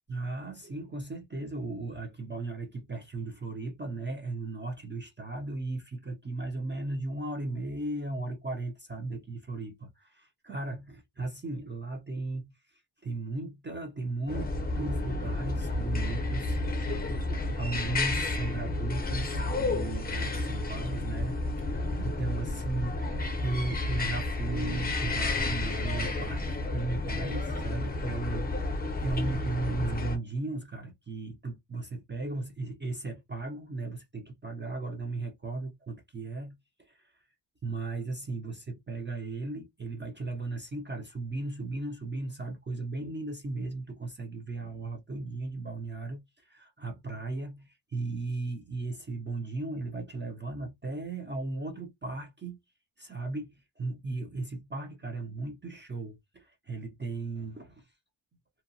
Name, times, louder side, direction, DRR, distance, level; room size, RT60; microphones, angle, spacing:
voice 1, 0.1-17.2 17.5-37.1 37.6-52.6 53.0-57.9, right 3 dB, 25° right, 0.5 m, -36 dB
sound 1, 14.3-30.2, left 2 dB, 20° left, 0.6 m, -31 dB
2.8 x 2.1 x 2.6 m
wide cardioid pair, 165°, 45 cm